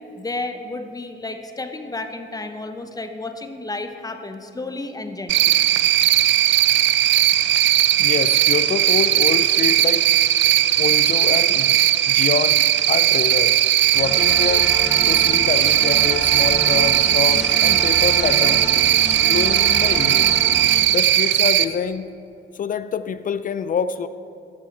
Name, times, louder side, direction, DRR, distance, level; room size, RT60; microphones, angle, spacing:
voice 1, 0.2-5.6, left 2 dB, 20° left, 7 dB, 0.8 m, -32 dB
Cricket, 5.3-21.6, right 12 dB, 70° right, 0.4 m, -17 dB
voice 2, 8.0-10.1 10.8-11.8 12.1-13.6 13.9-14.7 15.1-18.7 19.2-20.3 20.9-22.1 22.5-24.1, left 7 dB, 45° left, 14 dB, 0.4 m, -26 dB
sound 1, 13.9-20.8, equal, ahead, 1.3 m, -30 dB
12.0 x 8.7 x 4.1 m, 2.7 s
cardioid pair, 90°, 20 cm